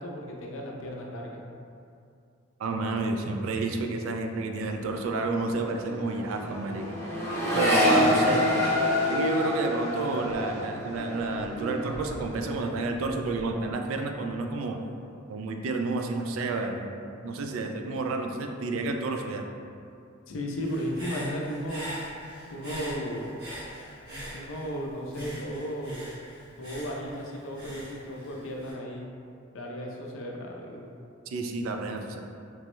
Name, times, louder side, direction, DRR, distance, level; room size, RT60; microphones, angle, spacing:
voice 1, 0.0-1.5 8.0-8.4 20.3-21.8 22.5-23.3 24.3-26.1 26.6-29.0 29.5-30.9, equal, 70° left, 0 dB, 0.4 m, -35 dB
voice 2, 2.6-7.0 7.5-8.7 9.1-14.9 15.3-17.0 17.2-19.5 31.3-32.2, right 3 dB, 80° right, 4 dB, 0.3 m, -30 dB
Accelerating revving vroom, 4.6-4.8 5.0-12.6 12.9-13.5, left 1 dB, 15° left, 0.6 m, -28 dB
Human voice / Breathing, 20.6-24.8 25.1-28.7, equal, 55° right, 1.1 m, -41 dB
3.3 x 2.0 x 3.0 m, 2.5 s
head